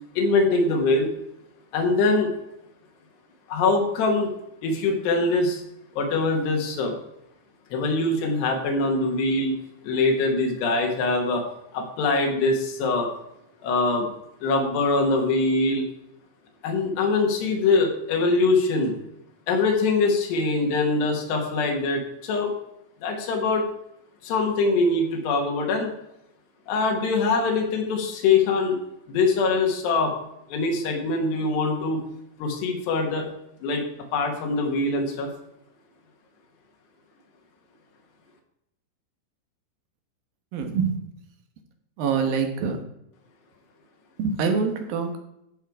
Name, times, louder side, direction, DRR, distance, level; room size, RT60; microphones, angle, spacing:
voice 1, 0.2-1.1 1.7-2.3 3.5-4.3 4.6-5.6 6.0-6.9 7.7-9.6 9.8-11.4 11.7-13.1 13.6-14.1 14.4-15.9 16.6-19.0 19.5-22.5 23.0-23.7 24.2-25.9 26.7-28.8 29.1-30.1 30.5-32.0 32.4-33.3 33.6-33.8 34.1-35.3, left 3 dB, 85° left, 1 dB, 3.8 m, -23 dB
voice 2, 40.5-40.9 42.0-42.8 44.2-45.2, right 5 dB, 70° right, 5 dB, 2.8 m, -25 dB
14.5 x 5.5 x 4.7 m, 0.82 s
omnidirectional pair, 4.7 m